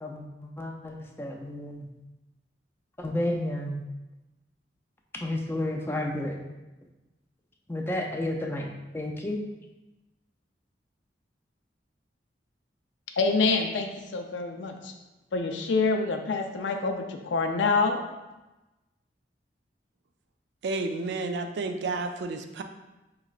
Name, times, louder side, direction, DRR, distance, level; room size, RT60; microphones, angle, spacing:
voice 1, 0.0-1.9 3.0-3.8 5.2-6.4 7.7-8.7 8.9-9.4, left 1 dB, 15° left, 0 dB, 0.4 m, -31 dB
voice 2, 13.2-14.9 15.3-18.0, left 4 dB, 80° left, 4 dB, 0.5 m, -26 dB
voice 3, 20.6-22.6, right 3 dB, 65° right, 6 dB, 0.4 m, -31 dB
4.7 x 3.1 x 2.4 m, 1.0 s
head